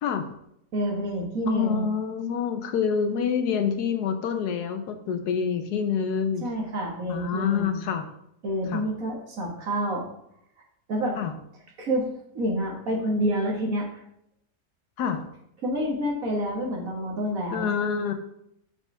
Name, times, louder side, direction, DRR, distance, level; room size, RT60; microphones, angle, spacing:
voice 1, 0.0-0.3 1.5-6.5 7.1-8.0 8.7-8.8 11.2-11.3 15.0-15.3 17.5-18.1, left 7 dB, 85° left, 7 dB, 1.4 m, -27 dB
voice 2, 0.7-1.9 6.4-7.8 8.4-10.0 10.9-11.2 11.8-12.1 12.3-13.9 15.6-17.7, equal, 60° right, -1 dB, 2.1 m, -28 dB
7.1 x 5.8 x 3.4 m, 0.75 s
omnidirectional pair, 1.7 m